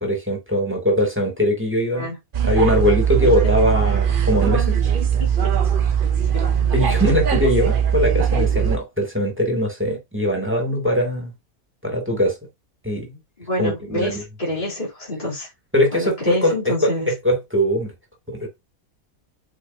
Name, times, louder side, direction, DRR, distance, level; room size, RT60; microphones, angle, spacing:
voice 1, 0.0-2.1 2.4-4.8 6.7-11.3 11.8-12.3 12.8-13.2 13.6-14.2 15.7-17.9 18.3-18.5, equal, 10° right, 2.8 m, -21 dB
sound 1, 2.3-8.8, right 8 dB, 40° right, 0.9 m, -20 dB
voice 2, 13.4-15.5 15.9-17.1, left 1 dB, 30° left, 3.7 m, -27 dB
8.5 x 5.1 x 2.8 m
omnidirectional pair, 1.5 m